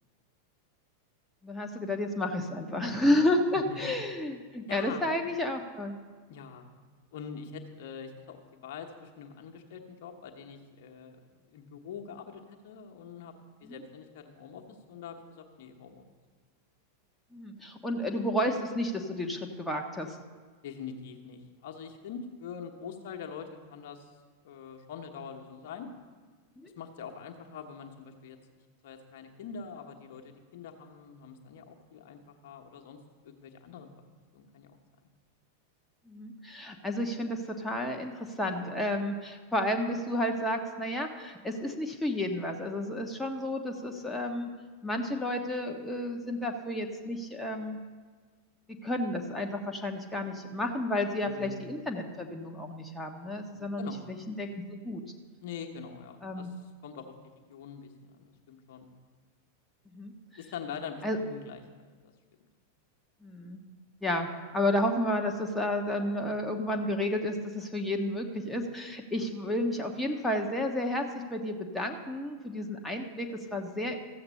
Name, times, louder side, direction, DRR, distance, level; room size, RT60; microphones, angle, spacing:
voice 1, 1.4-6.0 13.6-13.8 17.3-20.2 26.6-26.7 36.1-44.5 44.8-47.8 48.7-55.0 56.2-56.5 59.9-60.1 61.0-61.2 63.2-63.6 64.0-74.0, left 1 dB, 5° left, 2 dB, 1.1 m, -31 dB
voice 2, 3.5-3.9 4.7-5.0 6.3-6.7 7.1-13.3 13.6-16.0 20.6-24.1 24.4-25.9 26.6-28.4 28.8-33.0 33.2-33.9 34.3-34.8 51.3-51.6 53.8-54.1 55.4-56.5 56.8-57.1 57.5-58.9 60.4-61.6, left 6 dB, 50° left, 3 dB, 1.2 m, -44 dB
14.0 x 7.8 x 5.6 m, 1.5 s
figure-of-eight pair, 90°, 0 cm